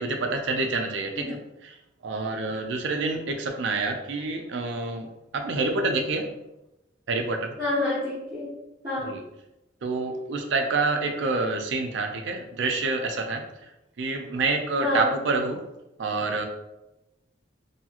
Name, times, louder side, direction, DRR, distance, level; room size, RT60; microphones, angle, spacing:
voice 1, 0.0-1.8 2.0-5.1 5.3-6.3 7.1-7.6 9.1-9.2 9.8-13.5 14.0-15.6 16.0-16.5, right 3 dB, 75° right, 4 dB, 0.4 m, -27 dB
voice 2, 7.6-8.5 8.8-9.1 14.8-15.2, left 2 dB, 20° right, -12 dB, 0.9 m, -28 dB
2.8 x 2.7 x 2.4 m, 0.92 s
head